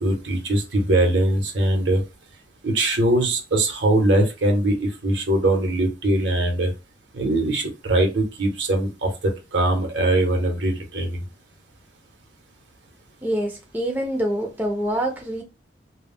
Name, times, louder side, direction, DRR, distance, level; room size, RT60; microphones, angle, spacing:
voice 1, 0.0-2.0 2.6-6.7 7.1-9.1 9.5-11.2, right 1 dB, 70° right, 0.8 m, -21 dB
voice 2, 13.2-15.4, right 1 dB, 10° right, 0.4 m, -25 dB
2.2 x 2.0 x 3.4 m
head